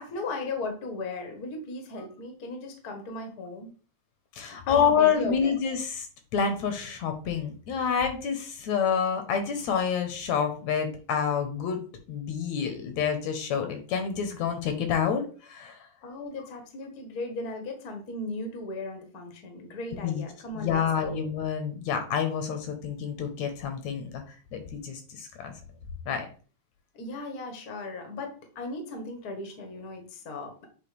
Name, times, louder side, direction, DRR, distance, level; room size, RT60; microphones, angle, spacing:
voice 1, 0.0-3.7 4.7-5.5 16.0-21.2 26.9-30.5, left 2 dB, 50° left, 4 dB, 1.2 m, -37 dB
voice 2, 4.4-6.1 6.3-11.8 12.1-15.9 20.0-20.3 20.5-24.2 24.5-25.5 26.1-26.3, left 7 dB, 75° left, 6 dB, 2.1 m, -28 dB
7.8 x 3.7 x 3.2 m, 0.39 s
omnidirectional pair, 3.5 m